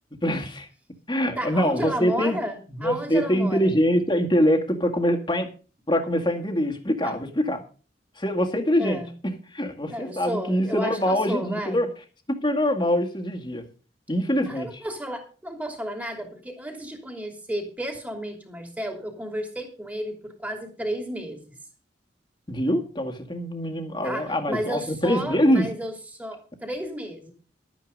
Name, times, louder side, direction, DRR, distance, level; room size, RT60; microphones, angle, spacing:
voice 1, 0.2-0.7 1.1-2.4 2.7-5.5 5.9-7.6 8.2-11.9 12.3-13.6 14.1-14.8 22.5-25.7, equal, 25° left, 4 dB, 1.9 m, -24 dB
voice 2, 1.2-3.7 7.0-7.2 8.8-9.1 9.8-11.8 14.5-21.5 24.0-27.3, equal, 10° right, 2 dB, 3.0 m, -32 dB
12.5 x 9.3 x 5.3 m, 0.37 s
head